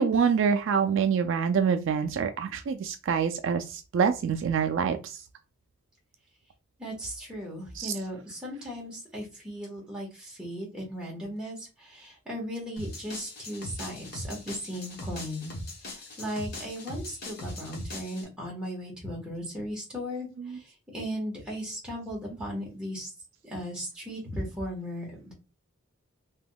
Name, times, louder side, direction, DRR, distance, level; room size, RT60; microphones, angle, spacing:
voice 1, 0.0-5.2 7.7-8.0 20.4-20.6, right 6 dB, 55° right, 6 dB, 0.3 m, -26 dB
voice 2, 6.8-15.6 15.9-20.6 20.9-23.1 23.4-25.3, equal, 5° right, -4 dB, 1.2 m, -37 dB
sound 1, 12.8-18.2, left 1 dB, 45° left, 0.9 m, -40 dB
3.4 x 2.9 x 2.2 m, 0.30 s
head